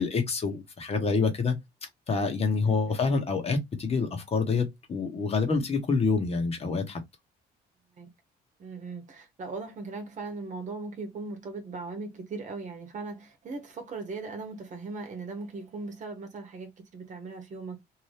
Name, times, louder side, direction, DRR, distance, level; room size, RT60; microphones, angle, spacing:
voice 1, 0.0-1.6 2.1-7.0, left 4 dB, 35° left, 1.1 m, -27 dB
voice 2, 2.6-3.0 8.0-8.1 8.6-17.8, right 3 dB, 45° right, 1.1 m, -39 dB
2.8 x 2.6 x 3.3 m
cardioid pair, 115°, 17 cm